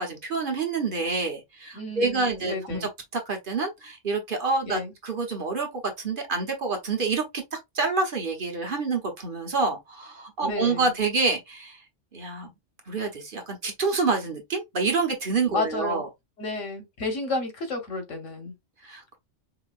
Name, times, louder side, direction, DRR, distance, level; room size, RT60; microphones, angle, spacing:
voice 1, 0.0-7.4 7.7-11.8 12.1-12.5 12.9-16.1 18.8-19.2, right 4 dB, 45° right, 1.2 m, -27 dB
voice 2, 1.7-2.9 4.6-4.9 10.4-10.9 15.5-16.0 16.4-18.5, left 2 dB, 90° left, 1.5 m, -31 dB
4.8 x 2.8 x 2.4 m
omnidirectional pair, 1.2 m